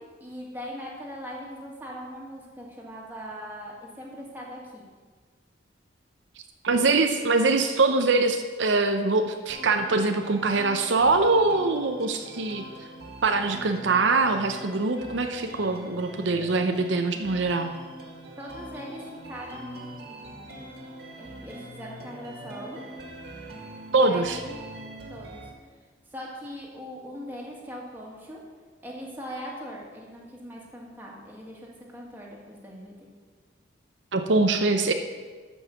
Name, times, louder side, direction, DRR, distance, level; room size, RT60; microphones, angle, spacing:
voice 1, 0.0-4.8 18.4-20.6 21.2-22.8 23.9-24.6 25.1-25.5 26.1-28.4 28.8-33.1, equal, 10° right, -3 dB, 1.9 m, -40 dB
voice 2, 6.6-12.6 13.2-17.7 23.9-24.4 34.1-34.9, right 3 dB, 75° right, 6 dB, 0.7 m, -23 dB
sound 1, 9.5-25.5, right 1 dB, 55° right, 1.9 m, -43 dB
12.5 x 5.5 x 7.1 m, 1.5 s
head